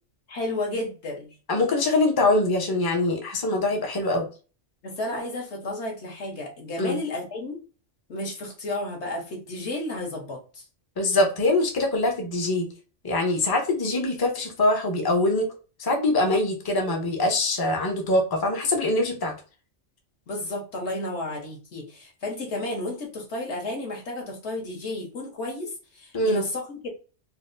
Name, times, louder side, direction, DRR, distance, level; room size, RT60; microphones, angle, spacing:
voice 1, 0.3-1.3 4.8-7.6 8.1-10.6 20.3-26.9, left 2 dB, 65° left, 0 dB, 1.3 m, -32 dB
voice 2, 1.5-4.3 6.8-7.0 11.0-12.7 13.0-15.5 15.8-19.3 26.1-26.4, left 2 dB, 25° left, 3 dB, 0.5 m, -23 dB
4.2 x 2.2 x 2.5 m, 0.35 s
omnidirectional pair, 1.3 m